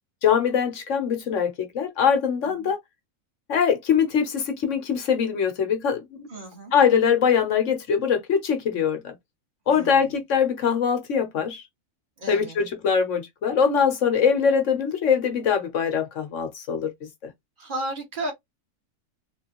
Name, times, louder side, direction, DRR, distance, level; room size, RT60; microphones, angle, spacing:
voice 1, 0.2-2.8 3.5-6.3 6.7-9.1 9.7-11.6 12.3-16.9 17.2-17.3, left 7 dB, 60° left, 1.2 m, -22 dB
voice 2, 6.3-6.7 9.7-10.1 12.2-12.6 17.6-18.3, right 1 dB, 35° right, 1.9 m, -34 dB
3.6 x 3.3 x 2.9 m
omnidirectional pair, 1.5 m